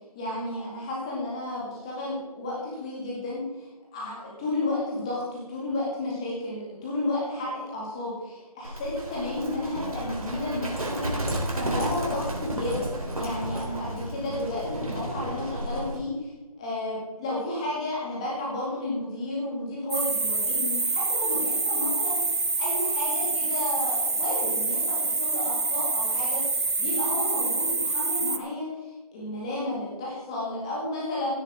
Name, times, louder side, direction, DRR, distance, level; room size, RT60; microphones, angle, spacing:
voice 1, 0.1-11.2 11.5-16.3 16.6-26.4 26.8-31.4, left 1 dB, 10° left, -5 dB, 2.3 m, -32 dB
Livestock farm animals working animals, 8.6-16.0, right 1 dB, 65° right, 3.6 m, -32 dB
sound 1, 19.9-28.4, right 3 dB, 45° right, 0.8 m, -26 dB
16.5 x 8.6 x 3.7 m, 1.1 s
figure-of-eight pair, 170°, 20 cm